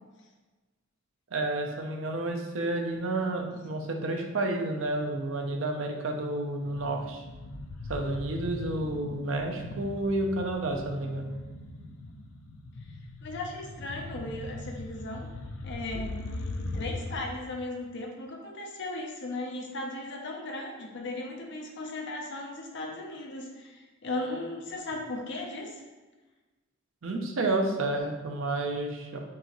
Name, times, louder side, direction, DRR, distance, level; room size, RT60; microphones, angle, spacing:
voice 1, 1.3-7.2 7.9-11.3 16.6-16.7 27.0-29.2, right 2 dB, 70° right, 3 dB, 0.6 m, -30 dB
sound 1, 6.6-17.2, left 2 dB, 90° left, 0.5 m, -40 dB
voice 2, 13.2-15.3 15.6-16.2 16.7-25.8, left 2 dB, 60° left, 0 dB, 0.7 m, -37 dB
4.6 x 2.9 x 3.1 m, 1.2 s
head